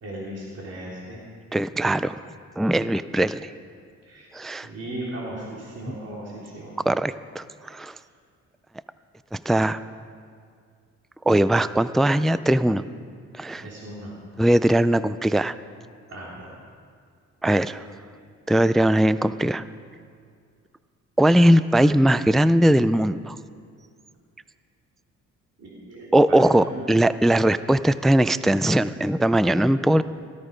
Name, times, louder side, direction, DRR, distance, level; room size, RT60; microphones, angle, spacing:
voice 1, 0.0-1.2 4.0-4.3 4.6-6.7 13.6-14.1 16.1-16.5 25.6-27.0, right 1 dB, 55° right, -5 dB, 3.3 m, -37 dB
voice 2, 1.5-2.2 2.6-3.5 4.3-4.7 5.9-6.0 6.9-8.0 9.3-9.8 11.3-12.9 13.3-13.7 14.4-15.5 17.4-17.8 18.5-19.6 21.2-23.4 26.1-30.0, right 1 dB, ahead, 14 dB, 0.3 m, -20 dB
17.0 x 13.5 x 5.1 m, 2.2 s
cardioid pair, 90°, 30 cm